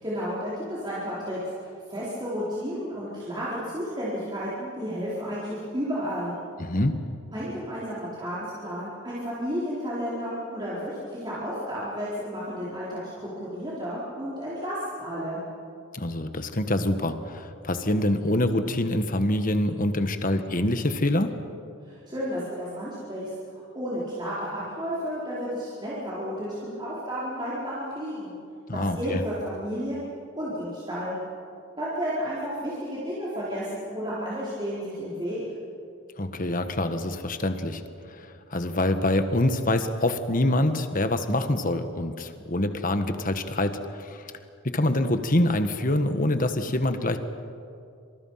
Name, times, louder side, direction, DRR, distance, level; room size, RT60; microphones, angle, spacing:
voice 1, 0.0-1.4 1.9-6.3 7.3-15.4 21.8-23.3 23.7-28.4 28.7-30.1 30.4-31.2 31.8-35.4, equal, 20° right, -9 dB, 4.6 m, -32 dB
voice 2, 6.6-7.0 15.9-21.3 28.7-29.2 36.2-37.8 38.1-44.3 44.6-47.2, left 1 dB, 40° left, 8 dB, 1.5 m, -25 dB
28.0 x 26.5 x 5.8 m, 2.5 s
head